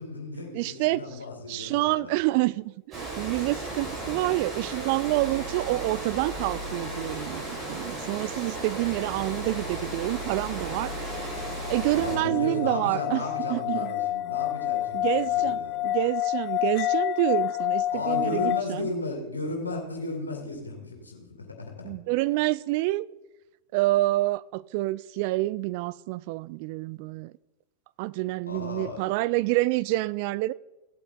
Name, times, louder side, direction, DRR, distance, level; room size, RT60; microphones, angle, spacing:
voice 1, 0.0-2.1 3.7-4.3 11.9-15.9 17.9-21.9 28.5-29.0, left 2 dB, 85° left, 2.5 m, -35 dB
voice 2, 0.5-1.0 1.5-7.4 7.7-11.3 11.7-13.2 13.5-13.9 14.9-18.9 21.8-23.1 23.7-27.3 28.0-30.5, right 19 dB, 50° right, 0.3 m, -27 dB
Water, 2.9-12.2, right 1 dB, 25° right, 4.9 m, -35 dB
sound 1, 10.2-18.6, left 14 dB, 40° left, 0.3 m, -29 dB
16.0 x 8.4 x 3.8 m
figure-of-eight pair, 90°, 0 cm